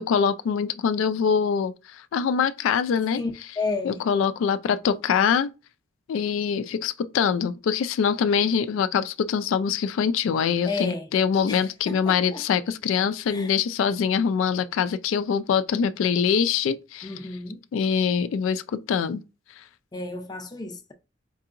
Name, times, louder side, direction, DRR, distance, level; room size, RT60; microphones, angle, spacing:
voice 1, 0.0-3.2 3.8-5.5 6.1-17.1 17.7-19.2 19.6-19.7, left 7 dB, 85° left, 0.3 m, -24 dB
voice 2, 3.1-4.0 10.7-11.1 11.5-12.4 13.3-13.5 17.0-17.6 19.9-20.9, left 3 dB, 20° left, 0.5 m, -32 dB
4.5 x 2.8 x 2.4 m
head